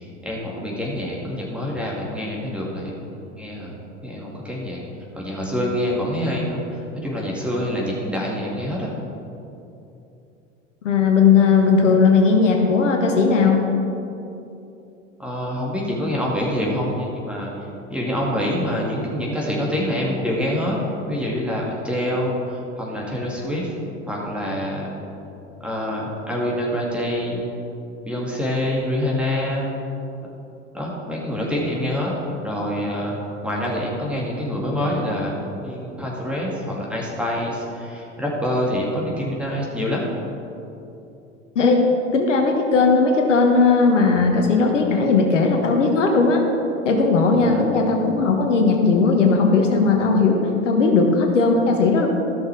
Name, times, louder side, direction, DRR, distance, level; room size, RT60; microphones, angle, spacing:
voice 1, 0.0-3.1 3.4-3.7 4.0-4.8 5.1-8.9 15.2-20.8 21.1-23.7 24.1-24.9 25.6-27.5 28.1-29.7 30.7-33.2 33.4-35.3 35.6-40.1 47.3-47.6, equal, 5° right, -4 dB, 2.5 m, -26 dB
voice 2, 10.8-13.6 41.5-41.8 42.1-46.4 46.8-52.1, left 4 dB, 75° left, 2 dB, 1.3 m, -17 dB
14.0 x 6.5 x 4.8 m, 2.8 s
figure-of-eight pair, 85°, 37 cm